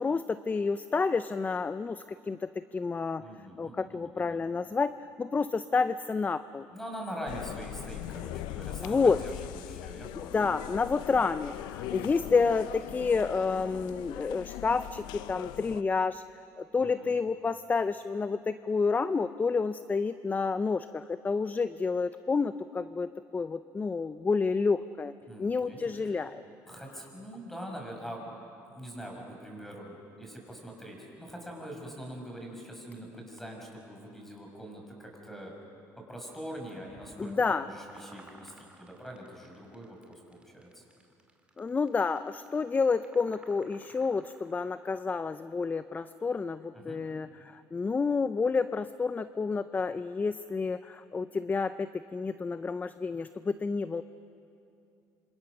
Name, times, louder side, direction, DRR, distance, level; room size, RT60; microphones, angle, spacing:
voice 1, 0.0-3.3 3.6-4.9 5.2-6.7 8.8-9.2 10.2-16.2 16.6-25.1 25.4-26.4 37.2-37.7 41.6-54.0, left 4 dB, 20° left, 13 dB, 0.5 m, -29 dB
voice 2, 3.2-4.4 6.7-10.4 16.8-17.1 25.3-26.2 26.7-35.5 36.1-40.8 46.7-47.0, equal, 5° left, 0 dB, 6.2 m, -43 dB
sound 1, 7.3-15.8, left 14 dB, 85° left, 0.6 m, -40 dB
sound 2, 36.9-45.0, right 2 dB, 15° right, 2.5 m, -56 dB
26.5 x 26.5 x 6.4 m, 2.7 s
cardioid pair, 100°, 8 cm